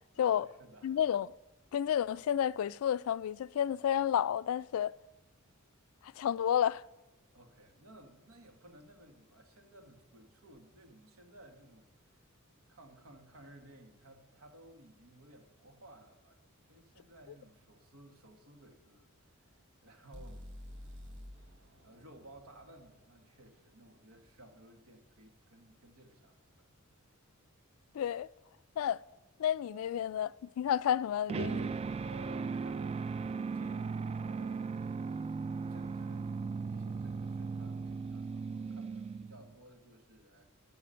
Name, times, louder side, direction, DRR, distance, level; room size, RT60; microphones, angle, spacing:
voice 1, 0.1-1.0 7.3-12.1 12.7-16.4 16.7-19.1 19.8-21.2 21.8-26.7 32.0-33.3 33.5-40.4, right 1 dB, 80° right, 1.6 m, -57 dB
voice 2, 0.8-1.3 1.7-4.9 6.2-6.8 27.9-28.3 28.8-29.0 29.4-31.7, left 9 dB, 75° left, 0.3 m, -31 dB
sound 1, 20.1-24.1, left 1 dB, 60° right, 1.2 m, -51 dB
sound 2, 31.3-39.5, right 4 dB, 30° right, 0.3 m, -37 dB
13.0 x 8.0 x 5.6 m
head